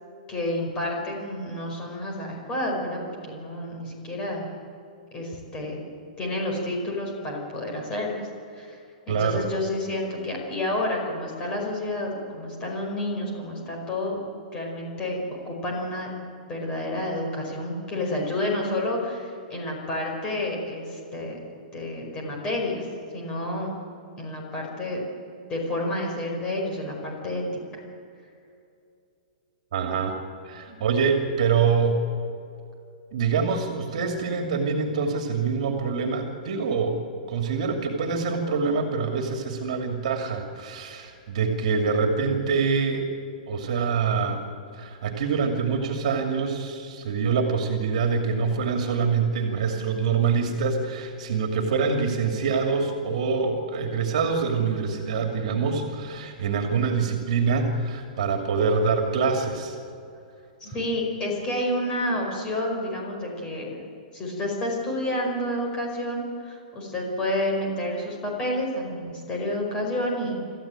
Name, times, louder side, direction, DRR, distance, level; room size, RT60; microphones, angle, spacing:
voice 1, 0.3-4.5 5.1-5.8 6.2-8.3 8.5-14.2 14.5-16.1 16.5-21.4 21.7-22.9 23.1-23.8 24.2-25.0 25.5-27.4 30.7-30.8 60.6-63.8 64.1-70.4, left 1 dB, 20° left, 0 dB, 5.2 m, -30 dB
voice 2, 9.1-9.4 29.7-30.2 30.4-32.0 33.1-43.1 43.5-44.4 44.7-59.8, right 5 dB, 55° right, 3 dB, 2.7 m, -25 dB
26.5 x 14.5 x 9.0 m, 2.5 s
hypercardioid pair, 170°, 4 cm